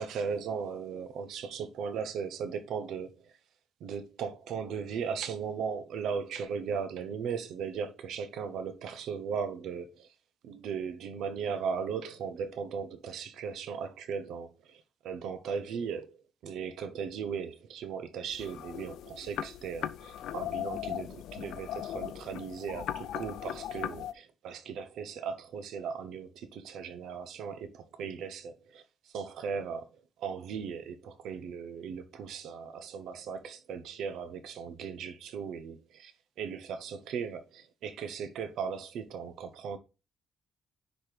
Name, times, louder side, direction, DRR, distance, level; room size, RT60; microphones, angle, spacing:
voice 1, 0.0-3.2 3.8-10.1 10.4-16.2 16.4-28.8 29.1-29.9 30.2-36.1 36.4-39.8, right 6 dB, 70° right, 0.8 m, -37 dB
sound 1, 18.3-24.1, left 11 dB, 75° left, 0.5 m, -38 dB
10.5 x 4.2 x 3.3 m
cardioid pair, 170°, 0 cm